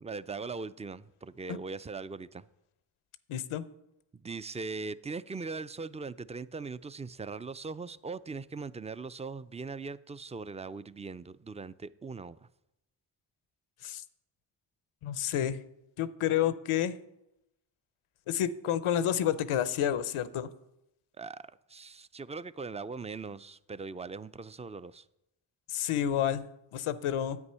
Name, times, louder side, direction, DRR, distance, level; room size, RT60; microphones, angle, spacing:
voice 1, 0.0-2.4 4.1-12.4 21.2-25.0, right 4 dB, 15° right, 16 dB, 0.4 m, -40 dB
voice 2, 3.3-3.6 13.8-14.0 15.0-15.6 16.0-17.0 18.3-20.5 25.7-26.4 26.7-27.4, left 10 dB, 85° left, 15 dB, 0.7 m, -29 dB
9.8 x 8.2 x 5.6 m, 0.86 s
cardioid pair, 40°, 49 cm